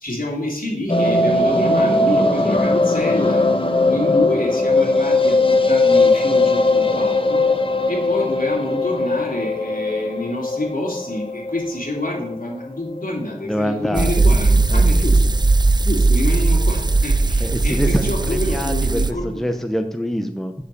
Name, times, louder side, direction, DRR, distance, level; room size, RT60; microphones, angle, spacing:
voice 1, 0.0-7.4 7.9-15.2 15.8-19.4, left 1 dB, 65° left, -1 dB, 2.7 m, -27 dB
sound 1, 0.9-13.0 13.3-13.4 13.7-13.8 14.0-14.1, left 2 dB, 35° left, 1.0 m, -19 dB
voice 2, 2.0-2.7 13.4-14.3 14.6-14.8 17.4-20.5, equal, ahead, 6 dB, 0.8 m, -25 dB
sound 2, 13.9-19.1, right 3 dB, 30° right, 0.5 m, -17 dB
7.4 x 7.0 x 6.8 m, 0.79 s
wide cardioid pair, 50°, 15 cm